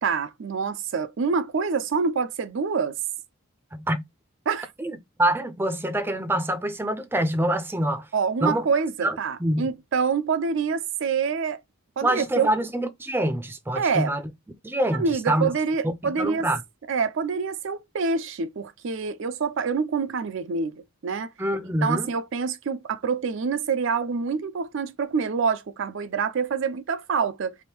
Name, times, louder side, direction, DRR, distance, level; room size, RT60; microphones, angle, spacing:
voice 1, 0.0-3.0 4.5-4.7 8.1-11.6 12.0-12.5 13.8-14.1 14.9-16.5 16.9-21.3 21.8-27.6, right 5 dB, 60° right, 0.4 m, -26 dB
voice 2, 3.7-4.0 4.8-8.1 8.4-8.7 9.0-9.7 12.0-14.2 14.6-15.5 15.8-16.6 21.4-22.1, right 1 dB, 10° right, 0.5 m, -26 dB
3.4 x 2.6 x 4.4 m
head